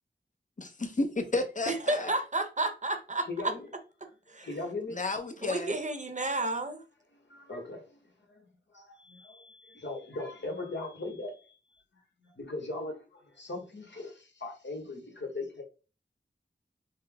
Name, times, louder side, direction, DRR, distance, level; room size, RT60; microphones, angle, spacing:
voice 1, 0.6-2.1 4.9-5.7, left 2 dB, 40° left, 0.8 m, -32 dB
voice 2, 1.7-3.5 4.3-4.5 5.4-6.8, right 2 dB, 40° right, 0.8 m, -31 dB
voice 3, 3.3-3.7 4.4-5.0 7.1-8.5 8.7-11.8 12.2-15.6, left 2 dB, 70° left, 1.2 m, -39 dB
5.4 x 2.0 x 3.4 m
wide cardioid pair, 70°, 20 cm